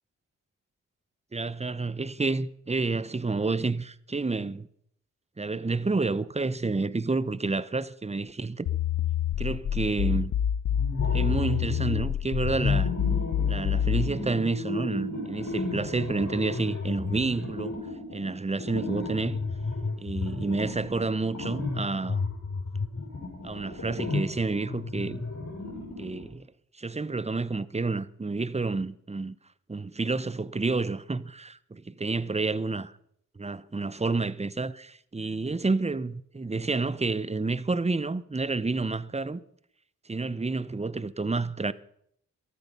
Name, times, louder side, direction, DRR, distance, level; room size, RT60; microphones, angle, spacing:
voice 1, 1.3-4.7 5.4-8.7 9.4-10.3 11.1-12.9 13.5-17.7 18.1-19.4 20.0-22.2 23.4-25.2 26.0-26.5 26.8-29.4 29.7-32.8 33.4-39.4 40.1-41.7, right 3 dB, 20° right, 0.9 m, -29 dB
sound 1, 8.7-14.1, left 9 dB, 80° left, 0.9 m, -27 dB
sound 2, 10.7-12.0 12.4-26.3, left 3 dB, 55° left, 7.5 m, -33 dB
13.5 x 13.0 x 5.5 m
supercardioid pair, 40°, 33 cm